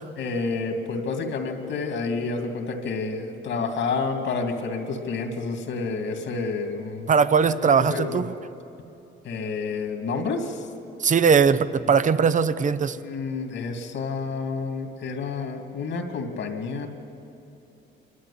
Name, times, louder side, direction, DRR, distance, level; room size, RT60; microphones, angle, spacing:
voice 1, 0.2-7.1 7.7-8.2 9.2-10.7 11.8-11.9 13.0-16.9, left 4 dB, 70° left, 4 dB, 2.7 m, -29 dB
voice 2, 7.1-8.3 11.0-13.0, right 6 dB, 40° right, 14 dB, 0.8 m, -20 dB
26.5 x 12.5 x 8.6 m, 2.9 s
cardioid pair, 90°, 20 cm